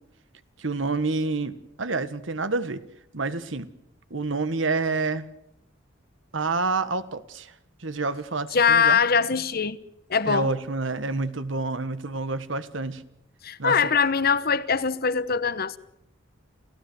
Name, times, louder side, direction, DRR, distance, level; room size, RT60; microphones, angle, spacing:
voice 1, 0.6-2.8 3.1-3.7 4.1-5.3 6.3-7.5 7.8-9.0 10.2-13.0 13.6-13.8, right 3 dB, 85° right, 1.4 m, -28 dB
voice 2, 8.5-9.8 10.1-10.5 13.4-15.8, left 6 dB, 55° left, 1.1 m, -22 dB
29.0 x 16.0 x 7.9 m
head